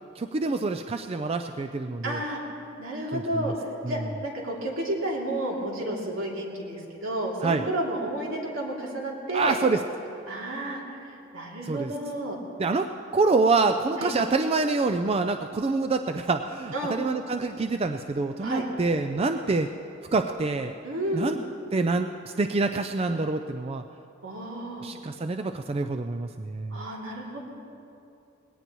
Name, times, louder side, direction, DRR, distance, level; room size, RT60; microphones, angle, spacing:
voice 1, 0.2-2.2 3.1-3.5 3.8-4.0 7.4-7.6 9.3-9.8 11.6-11.9 12.6-12.9 13.1-19.7 20.1-20.7 21.1-21.4 21.7-22.1 22.4-23.8 24.8-26.8, right 3 dB, 30° right, 7 dB, 0.4 m, -26 dB
voice 2, 2.0-2.4 2.8-3.5 3.9-9.6 10.3-10.8 11.3-12.4 14.0-14.1 16.7-17.0 18.4-18.7 20.8-21.4 24.2-24.9 26.7-27.4, right 1 dB, 75° right, -3 dB, 2.8 m, -31 dB
20.5 x 17.5 x 3.0 m, 2.7 s
head